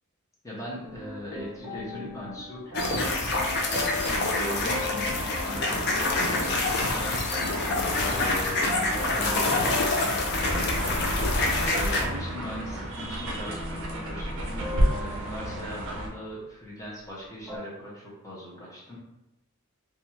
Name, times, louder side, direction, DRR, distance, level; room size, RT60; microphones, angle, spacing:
voice 1, 0.4-9.9 10.3-11.3 11.7-19.0, left 1 dB, 15° left, -6 dB, 0.7 m, -40 dB
sound 1, 0.8-16.4 17.5-17.6, left 2 dB, 10° right, 1.1 m, -39 dB
sound 2, 2.7-12.1, left 2 dB, 50° left, 0.4 m, -26 dB
sound 3, 10.5-16.1, right 1 dB, 60° right, 0.5 m, -31 dB
2.6 x 2.2 x 3.0 m, 0.94 s
head